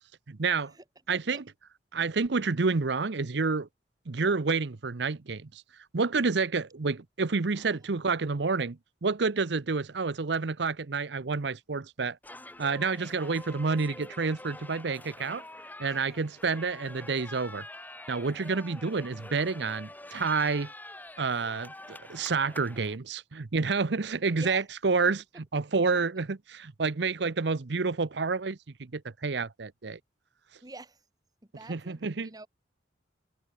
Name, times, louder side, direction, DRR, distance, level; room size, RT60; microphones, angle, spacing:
voice 1, 0.3-0.7 1.1-1.4 1.9-3.7 4.1-5.6 5.9-12.2 12.6-15.4 15.8-17.7 18.1-20.7 21.2-30.0 31.7-32.3, right 4 dB, 65° right, 0.8 m, -29 dB
voice 2, 1.1-1.4 7.6-7.8 24.4-24.7 30.6-31.0 31.5-32.5, right 2 dB, 20° right, 1.8 m, -46 dB
sound 1, 12.2-23.0, left 1 dB, 10° left, 7.0 m, -46 dB
head